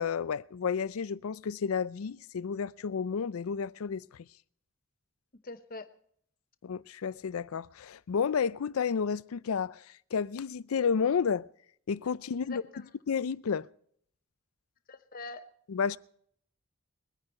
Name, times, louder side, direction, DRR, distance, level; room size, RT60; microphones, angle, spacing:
voice 1, 0.0-4.3 6.6-9.8 10.1-11.5 11.9-12.6 13.1-13.7 15.7-16.0, left 6 dB, 85° left, 0.4 m, -31 dB
voice 2, 5.4-5.9 12.4-12.9 14.9-15.5, left 3 dB, 45° left, 0.9 m, -43 dB
21.5 x 9.7 x 4.4 m
head